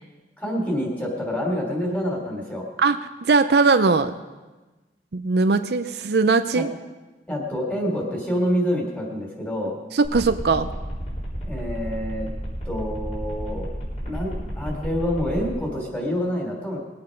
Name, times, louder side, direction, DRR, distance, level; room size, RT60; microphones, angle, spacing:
voice 1, 0.4-2.7 6.5-6.6 7.3-9.8 11.4-12.3 12.6-13.7 14.0-16.8, equal, 10° left, 0 dB, 3.0 m, -27 dB
voice 2, 2.8-4.1 5.1-6.7 9.9-10.7, right 4 dB, 65° right, 9 dB, 0.5 m, -20 dB
sound 1, 10.0-15.5, equal, 40° left, 3.9 m, -32 dB
20.0 x 8.7 x 5.2 m, 1.2 s
head